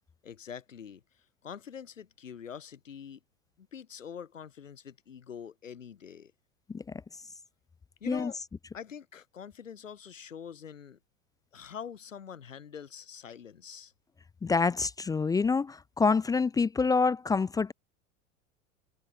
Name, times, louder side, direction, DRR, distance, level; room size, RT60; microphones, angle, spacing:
voice 1, 0.2-1.0 1.4-3.2 3.6-6.3 8.0-8.4 8.7-11.0 11.5-13.9, left 7 dB, 75° left, 3.1 m, -44 dB
voice 2, 14.4-17.7, left 4 dB, 10° left, 0.5 m, -26 dB
figure-of-eight pair, 85°, 38 cm